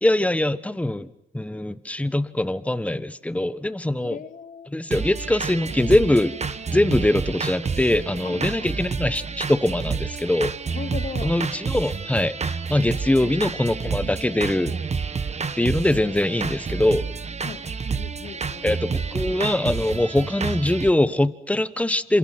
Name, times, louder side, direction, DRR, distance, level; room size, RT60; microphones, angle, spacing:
voice 1, 0.0-4.2 4.7-6.3 6.7-10.5 11.2-14.8 15.6-17.1 18.6-22.2, left 1 dB, 5° left, 1.3 m, -22 dB
voice 2, 4.0-4.7 8.2-8.7 10.7-11.3 13.2-13.3 17.4-17.6 17.9-18.7, left 6 dB, 40° left, 1.0 m, -37 dB
sound 1, 4.9-20.9, right 5 dB, 35° right, 1.5 m, -29 dB
29.0 x 27.0 x 6.1 m
cardioid pair, 90°, 20 cm